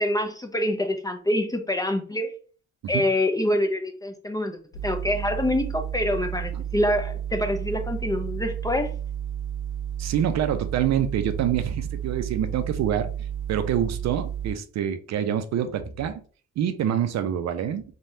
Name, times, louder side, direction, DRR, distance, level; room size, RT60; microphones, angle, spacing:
voice 1, 0.0-2.3 2.9-4.6 4.8-8.9, left 1 dB, 10° left, 0.5 m, -25 dB
sound 1, 4.7-14.5, right 10 dB, 75° left, 0.6 m, -32 dB
voice 2, 10.0-13.1 13.5-16.2 16.6-17.8, right 9 dB, 60° right, 0.5 m, -26 dB
3.2 x 2.3 x 2.7 m
cardioid pair, 90°, 30 cm